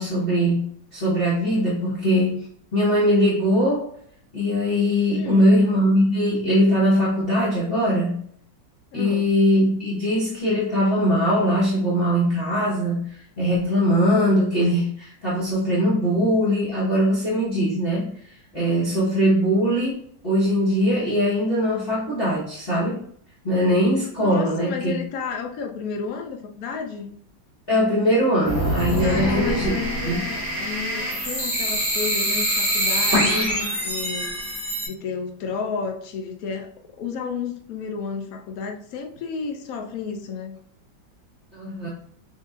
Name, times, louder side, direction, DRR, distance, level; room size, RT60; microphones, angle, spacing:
voice 1, 0.0-2.5 2.7-3.9 4.3-8.2 8.9-20.0 20.2-23.0 23.4-25.0 27.7-29.7 30.0-30.3 33.3-33.5 41.5-41.9, equal, 35° left, -9 dB, 1.1 m, -21 dB
voice 2, 5.1-5.5 8.9-9.3 24.2-27.1 29.0-34.3 34.9-36.7 37.0-40.6, left 5 dB, 65° left, 3 dB, 0.9 m, -32 dB
sound 1, 28.4-34.9, equal, 35° right, 2.2 m, -24 dB
5.8 x 2.8 x 2.4 m, 0.62 s
omnidirectional pair, 2.0 m